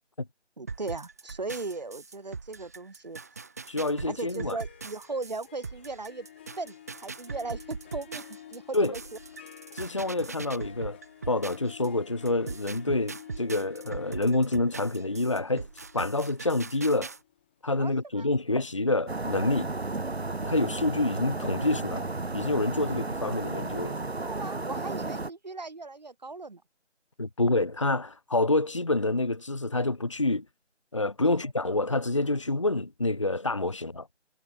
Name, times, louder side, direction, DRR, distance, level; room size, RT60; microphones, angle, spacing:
voice 1, 0.6-3.2 4.1-6.3 6.6-8.2 8.5-9.0 17.8-17.9 18.2-18.3 24.2-26.6 31.2-31.4, right 3 dB, 35° right, 7.3 m, -37 dB
sound 1, 0.7-11.9 12.3-17.2, right 4 dB, 15° right, 2.8 m, -41 dB
voice 2, 3.7-4.6 8.7-9.0 9.7-11.0 11.3-17.1 17.6-19.7 20.4-22.1 22.3-24.0 27.2-30.4 30.9-34.1, left 2 dB, 25° left, 2.0 m, -27 dB
Harp, 4.5-18.3, left 11 dB, 10° left, 7.7 m, -51 dB
sound 2, 19.1-25.3, right 3 dB, 60° right, 2.1 m, -33 dB
figure-of-eight pair, 175°, 36 cm